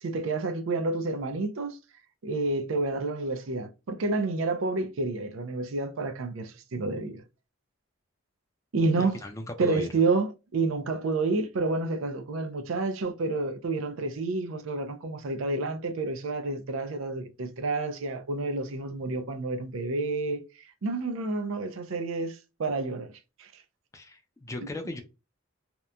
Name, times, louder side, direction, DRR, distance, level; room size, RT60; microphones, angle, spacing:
voice 1, 0.0-1.8 2.2-7.2 8.7-9.2 9.6-23.1 23.4-23.6, right 3 dB, 75° right, 0.5 m, -29 dB
voice 2, 9.0-9.9 23.9-25.0, left 1 dB, 15° left, 0.3 m, -37 dB
2.9 x 2.1 x 2.3 m
head